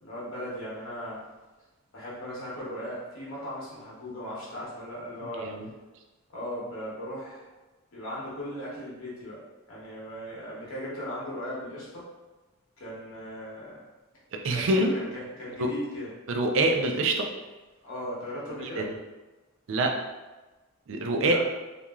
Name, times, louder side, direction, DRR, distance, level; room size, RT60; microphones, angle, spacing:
voice 1, 0.0-1.2 1.9-5.5 6.3-7.4 7.9-9.4 9.7-12.1 12.8-13.8 14.5-16.1 17.8-18.8 21.3-21.4, equal, 75° left, -7 dB, 0.9 m, -37 dB
voice 2, 5.4-5.7 14.3-14.9 15.6-15.7 16.3-17.3 18.6-18.8 19.7-19.9 20.9-21.4, right 2 dB, 60° right, 3 dB, 0.4 m, -25 dB
3.0 x 2.5 x 2.3 m, 1.1 s
head